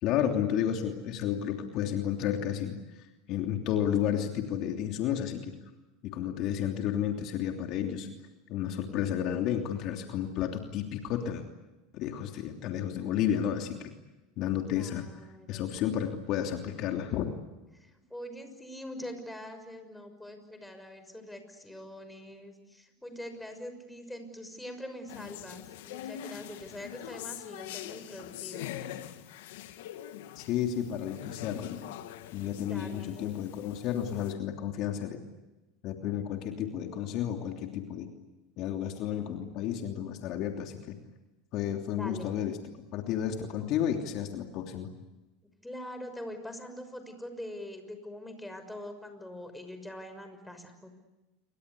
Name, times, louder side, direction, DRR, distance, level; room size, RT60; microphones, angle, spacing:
voice 1, 0.0-5.5 6.0-8.1 8.5-11.4 11.9-13.9 14.4-15.0 15.5-17.3 30.3-31.8 32.3-35.2 35.8-38.1 38.6-41.0 41.5-42.6 42.9-44.9, left 10 dB, 55° left, 4 dB, 3.1 m, -32 dB
voice 2, 14.7-16.0 17.7-28.7 32.5-33.4 41.9-42.3 45.6-50.9, left 1 dB, 5° left, 7 dB, 6.1 m, -44 dB
sound 1, 25.1-34.3, left 12 dB, 75° left, 1.9 m, -43 dB
28.5 x 24.0 x 8.5 m, 1.1 s
supercardioid pair, 105°, 0 cm